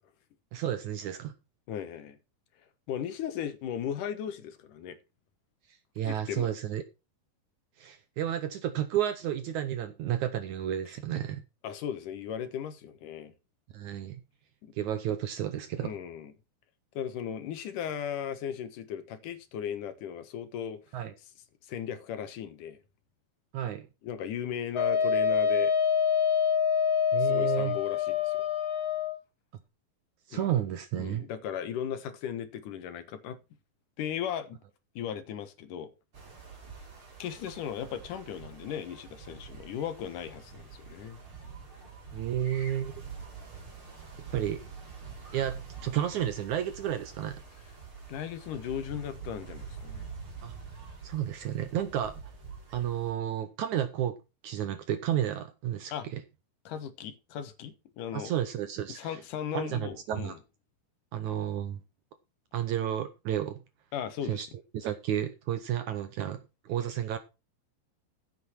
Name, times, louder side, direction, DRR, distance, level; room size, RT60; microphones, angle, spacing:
voice 1, 0.5-1.3 6.0-6.8 7.8-11.4 13.7-14.2 14.8-15.9 20.9-21.1 23.5-23.9 27.1-27.8 30.3-31.3 42.1-42.9 44.3-44.6 45.3-45.6 45.8-47.4 50.4-50.5 51.0-52.3 52.7-54.2 54.4-56.2 58.1-59.2 59.5-60.3 61.1-61.8 62.5-63.6 64.3-64.5 64.7-66.4 66.7-67.2, right 11 dB, 70° right, 2.0 m, -31 dB
voice 2, 1.7-2.2 2.9-5.0 6.0-6.5 11.6-13.3 14.6-14.7 15.8-16.3 17.0-20.8 21.7-22.8 24.0-25.7 27.2-28.5 30.3-30.5 31.0-33.4 34.0-34.6 35.0-35.9 37.2-41.2 48.1-50.1 55.9-56.1 56.7-58.3 58.9-60.4 63.9-64.4, left 9 dB, 70° left, 2.6 m, -37 dB
Wind instrument woodwind instrument, 24.7-29.2, left 7 dB, 85° left, 0.8 m, -26 dB
sound 1, 36.1-53.1, right 5 dB, 35° right, 4.4 m, -46 dB
14.5 x 6.8 x 4.4 m
omnidirectional pair, 4.2 m